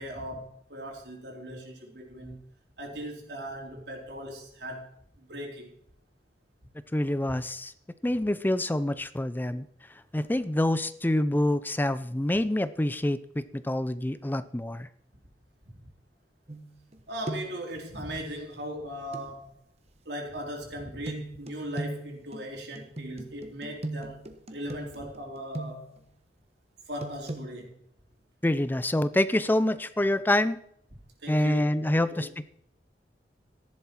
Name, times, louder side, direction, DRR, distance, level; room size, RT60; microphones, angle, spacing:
voice 1, 0.0-2.4 2.8-4.9 5.2-5.7 17.1-19.5 20.1-24.2 24.5-25.9 26.9-27.7 31.2-32.3, equal, 70° right, 0 dB, 3.7 m, -38 dB
voice 2, 6.9-7.7 8.0-9.7 10.1-14.9 28.4-30.6 31.3-32.5, left 1 dB, 10° left, 14 dB, 0.5 m, -26 dB
sound 1, 16.5-17.0 17.3-17.7 19.1-19.3 21.1-26.1 27.0-27.4, right 2 dB, 35° right, 1.3 m, -38 dB
14.0 x 11.0 x 4.5 m, 0.69 s
head